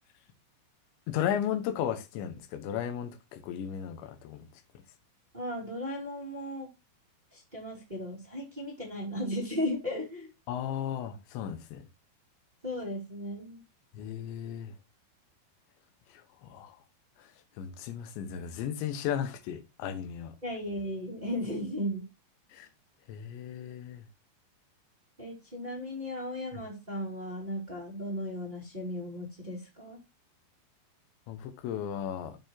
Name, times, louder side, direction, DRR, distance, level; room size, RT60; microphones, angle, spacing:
voice 1, 1.1-4.5 10.5-11.8 13.9-14.7 16.4-16.7 17.6-20.3 22.5-22.7 23.1-24.0 31.3-32.4, left 9 dB, 75° left, 3.4 m, -35 dB
voice 2, 5.3-6.7 7.3-10.3 12.6-13.6 20.4-22.1 25.2-30.0, left 1 dB, 15° right, 1.9 m, -36 dB
13.0 x 6.1 x 2.9 m
omnidirectional pair, 5.5 m